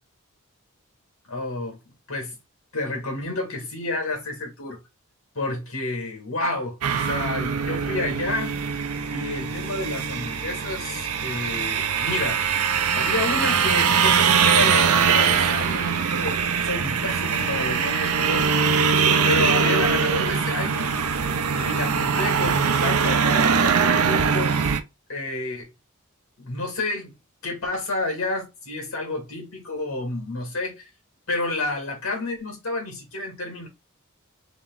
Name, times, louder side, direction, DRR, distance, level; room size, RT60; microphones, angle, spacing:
voice 1, 1.2-1.8 2.1-2.4 2.7-4.8 5.4-8.6 9.1-12.4 12.9-18.9 19.2-20.9 21.5-24.6 25.1-25.7 26.4-27.1 27.4-30.9 31.3-33.7, left 2 dB, 65° left, 2.0 m, -30 dB
sound 1, 6.8-24.8, right 6 dB, 80° right, 0.6 m, -22 dB
3.7 x 3.1 x 3.8 m
head